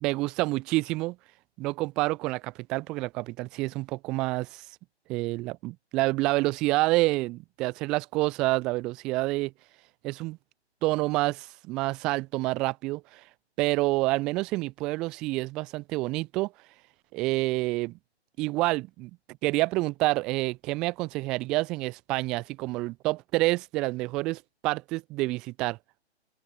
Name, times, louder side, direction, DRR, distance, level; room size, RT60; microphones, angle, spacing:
voice 1, 0.0-1.2 1.6-4.6 5.1-9.5 10.0-10.4 10.8-13.2 13.6-16.5 17.1-18.0 18.4-19.1 19.4-25.8, right 21 dB, ahead, 0.6 m, -28 dB
open air
figure-of-eight pair, 150°, 34 cm